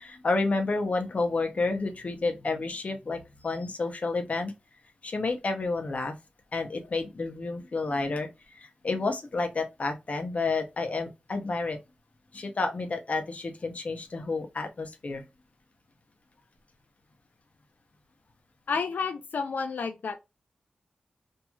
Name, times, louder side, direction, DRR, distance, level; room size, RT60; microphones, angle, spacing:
voice 1, 0.0-4.5 5.0-6.1 6.5-8.3 8.6-11.8 12.3-15.2, left 3 dB, 50° left, 0.7 m, -30 dB
voice 2, 18.7-20.2, left 5 dB, 90° left, 0.4 m, -30 dB
2.9 x 2.7 x 2.3 m
wide cardioid pair, 85°, 3 cm